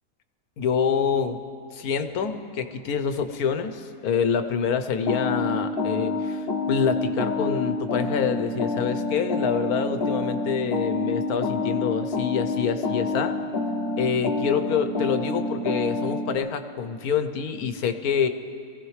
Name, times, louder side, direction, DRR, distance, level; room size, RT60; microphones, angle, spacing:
voice 1, 0.6-1.4 1.7-13.4 14.0-18.3, left 7 dB, 85° left, 9 dB, 1.3 m, -26 dB
sound 1, 5.1-16.3, left 2 dB, 50° left, 1.2 m, -28 dB
23.5 x 16.0 x 3.2 m, 2.7 s
omnidirectional pair, 1.5 m